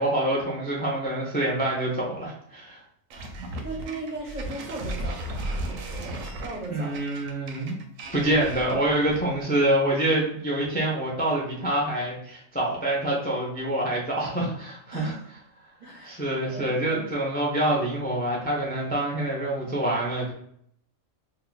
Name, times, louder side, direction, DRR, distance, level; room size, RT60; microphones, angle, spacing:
voice 1, 0.0-2.8 6.7-7.8 8.1-15.1 16.0-20.3, right 1 dB, 15° left, -3 dB, 0.4 m, -26 dB
sound 1, 3.1-9.4, right 1 dB, 75° right, 1.0 m, -35 dB
voice 2, 3.6-7.0 14.9-15.3 15.8-17.1, right 2 dB, 45° right, -3 dB, 0.7 m, -38 dB
2.8 x 2.3 x 3.9 m, 0.67 s
omnidirectional pair, 1.4 m